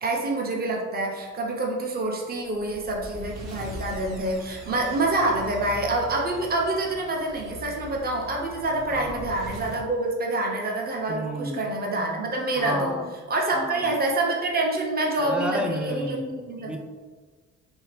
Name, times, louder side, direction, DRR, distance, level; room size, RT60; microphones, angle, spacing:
voice 1, 0.0-12.9 13.3-16.2 16.5-16.8, right 2 dB, 30° right, -1 dB, 0.7 m, -27 dB
sound 1, 2.4-9.9, left 1 dB, 90° right, 0.9 m, -41 dB
voice 2, 8.9-9.3 11.1-11.6 12.5-13.1 13.5-14.0 15.2-16.8, equal, 5° right, 4 dB, 0.3 m, -32 dB
3.3 x 2.7 x 3.2 m, 1.4 s
cardioid pair, 90°, 30 cm